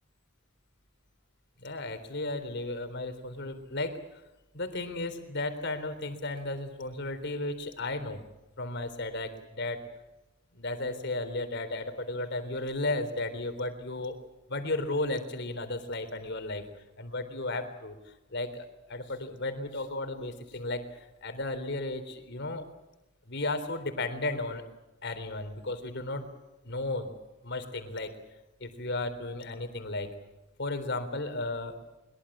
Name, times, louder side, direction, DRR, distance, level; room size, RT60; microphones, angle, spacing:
voice 1, 1.6-4.0 4.5-8.2 8.6-9.8 10.5-14.1 14.5-16.6 17.0-18.0 18.3-22.7 23.3-24.6 25.0-26.3 26.6-27.1 27.4-28.1 28.6-30.1 30.6-31.7, left 2 dB, 60° left, 9 dB, 3.7 m, -34 dB
23.0 x 23.0 x 7.4 m, 1.0 s
head